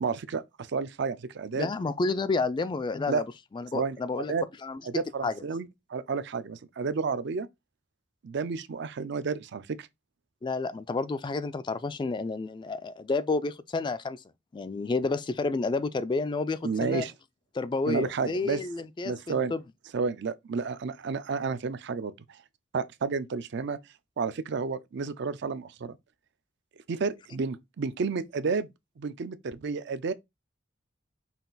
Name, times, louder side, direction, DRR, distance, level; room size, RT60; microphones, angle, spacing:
voice 1, 0.0-1.7 3.1-3.2 3.7-4.0 4.3-4.5 4.9-7.5 8.2-9.9 16.6-17.1 17.9-18.6 19.0-19.5 19.9-22.1 22.7-23.8 24.2-26.0 26.9-28.7 29.0-30.1, right 5 dB, 60° right, 0.4 m, -31 dB
voice 2, 1.5-3.2 3.5-4.3 4.6-4.8 5.2-5.3 10.4-14.2 14.5-17.1 17.5-19.6, left 3 dB, 25° left, 0.3 m, -30 dB
5.7 x 2.4 x 3.9 m
head